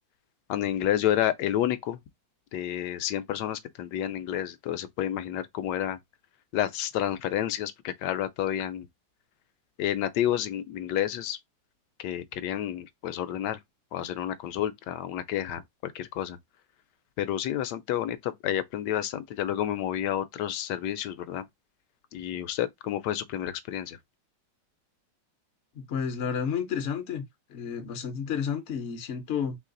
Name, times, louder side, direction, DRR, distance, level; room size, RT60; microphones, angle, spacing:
voice 1, 0.5-2.0 2.5-6.0 6.5-8.9 9.8-11.4 12.0-13.6 13.9-16.4 17.2-21.5 22.1-24.0, left 11 dB, 75° left, 1.1 m, -30 dB
voice 2, 25.7-27.2 27.5-29.6, left 7 dB, 60° left, 0.7 m, -31 dB
3.3 x 3.1 x 3.7 m
omnidirectional pair, 2.0 m